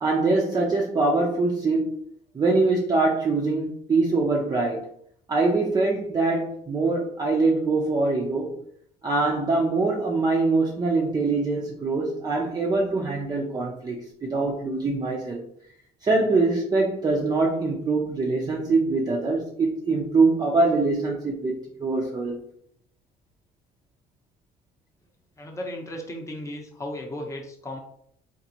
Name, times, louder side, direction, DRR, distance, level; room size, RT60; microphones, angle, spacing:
voice 1, 0.0-2.0 2.3-4.9 5.3-8.5 9.0-15.4 16.0-22.4, right 3 dB, 25° right, -2 dB, 0.5 m, -23 dB
voice 2, 25.4-27.8, left 1 dB, 20° left, 1 dB, 0.8 m, -35 dB
3.8 x 2.6 x 2.8 m, 0.69 s
cardioid pair, 110°, 17 cm